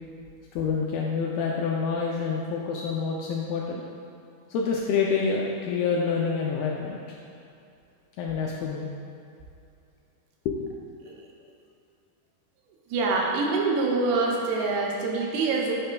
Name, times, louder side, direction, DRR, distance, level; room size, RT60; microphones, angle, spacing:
voice 1, 0.5-3.9 4.5-7.2 8.2-8.9 10.5-10.6, left 5 dB, 85° left, -2 dB, 2.2 m, -27 dB
voice 2, 12.9-15.7, right 3 dB, 80° right, -1 dB, 2.8 m, -25 dB
10.0 x 5.5 x 2.2 m, 2.6 s
omnidirectional pair, 4.7 m